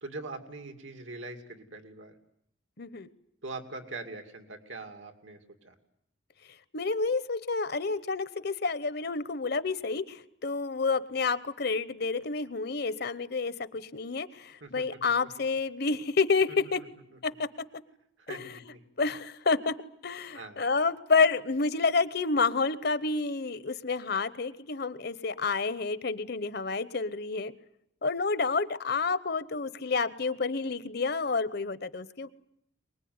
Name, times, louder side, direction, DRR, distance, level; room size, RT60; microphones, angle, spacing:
voice 1, 0.0-2.2 3.4-5.7 14.6-15.0 17.1-17.4 18.2-18.9 20.3-20.6, right 3 dB, 80° right, 6 dB, 2.7 m, -42 dB
voice 2, 2.8-3.1 6.7-16.8 17.2-17.5 18.3-18.5 19.0-19.7 20.0-27.5 28.0-32.3, left 4 dB, 55° left, 15 dB, 0.9 m, -29 dB
24.0 x 20.5 x 9.5 m, 0.75 s
head